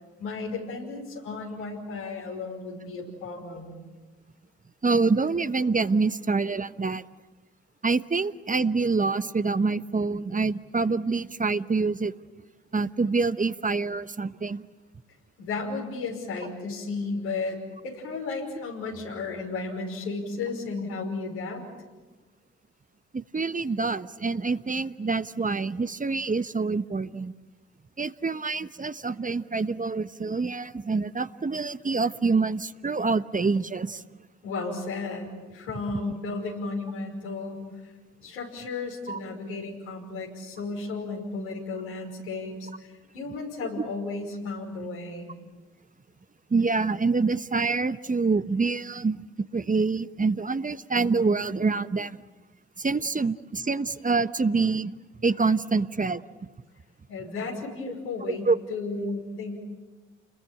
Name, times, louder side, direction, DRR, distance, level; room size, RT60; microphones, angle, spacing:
voice 1, 0.2-3.7 15.4-21.6 34.4-37.9 38.2-45.3 57.1-59.6, left 3 dB, 85° left, -1 dB, 5.7 m, -34 dB
voice 2, 4.8-7.0 7.8-12.1 12.7-14.6 23.1-27.3 28.0-34.0 39.1-39.2 46.5-49.2 49.5-52.2 52.8-54.9 55.2-56.2 58.4-58.6, right 4 dB, 25° right, 13 dB, 1.1 m, -26 dB
30.0 x 21.5 x 8.9 m, 1.2 s
hypercardioid pair, 45°, 31 cm